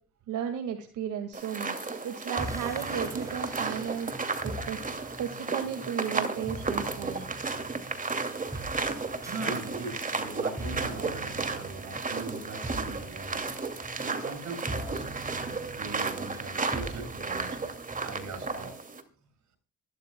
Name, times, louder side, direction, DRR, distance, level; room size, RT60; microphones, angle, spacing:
voice 1, 0.3-4.8 5.2-7.3, right 8 dB, 90° right, 5 dB, 2.1 m, -35 dB
sound 1, 1.3-19.0, right 3 dB, 25° right, 2.5 m, -34 dB
sound 2, 2.4-18.7, right 1 dB, 10° right, 2.1 m, -43 dB
voice 2, 6.6-7.3 9.2-13.5 14.0-15.1 15.4-18.8, right 4 dB, 70° right, 7 dB, 7.4 m, -41 dB
25.0 x 12.5 x 2.3 m, 0.36 s
cardioid pair, 90°, 30 cm